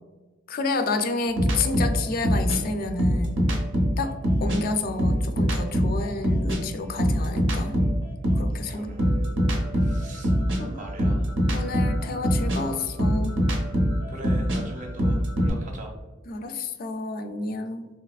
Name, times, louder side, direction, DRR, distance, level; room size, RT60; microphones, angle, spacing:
voice 1, 0.5-3.5 4.0-4.1 4.4-7.7 8.3-8.9 10.6-10.8 11.5-13.4 16.3-17.9, left 3 dB, 50° left, 7 dB, 0.3 m, -30 dB
sound 1, 1.4-4.6 4.9-8.5 9.0-15.5, equal, 80° right, 0.7 m, -23 dB
voice 2, 8.7-9.1 9.8-11.3 14.1-15.9, right 1 dB, 40° right, 1 dB, 0.6 m, -41 dB
3.2 x 2.8 x 2.3 m, 1.2 s
head